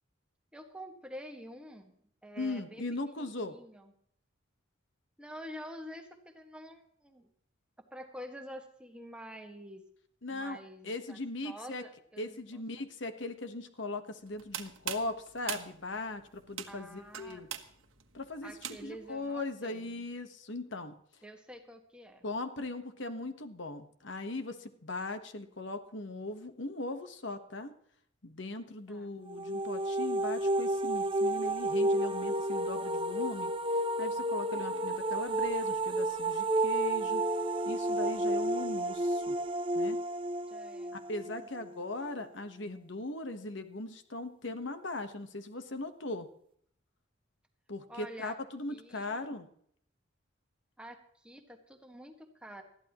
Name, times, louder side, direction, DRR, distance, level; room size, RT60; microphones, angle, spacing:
voice 1, 0.5-1.9 2.2-3.9 5.2-7.3 7.8-9.8 10.3-11.2 11.4-12.9 16.7-17.4 18.4-20.0 21.2-22.2 28.9-29.1 34.5-34.9 40.5-40.9 41.3-42.0 47.9-48.4 48.7-49.2 50.8-52.6, equal, 5° right, 4 dB, 1.7 m, -48 dB
voice 2, 2.4-3.6 10.2-10.6 10.8-11.8 12.2-17.5 18.1-18.5 18.8-21.0 22.2-27.7 28.2-37.2 37.6-39.3 39.7-40.0 40.9-46.3 47.7-49.5, left 2 dB, 60° left, 8 dB, 1.3 m, -39 dB
sound 1, 14.3-19.1, right 9 dB, 75° right, 1.4 m, -42 dB
sound 2, 29.3-42.1, right 1 dB, 25° right, 0.7 m, -31 dB
20.5 x 14.0 x 3.1 m, 0.66 s
head